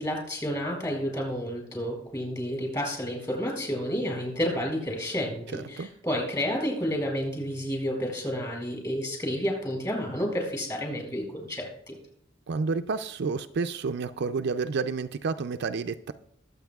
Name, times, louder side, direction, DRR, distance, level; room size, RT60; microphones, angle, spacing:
voice 1, 0.0-12.0, equal, 20° left, 1 dB, 4.2 m, -30 dB
voice 2, 5.5-5.9 12.5-16.1, right 4 dB, 55° right, 9 dB, 0.4 m, -30 dB
21.0 x 7.9 x 2.3 m, 0.70 s
head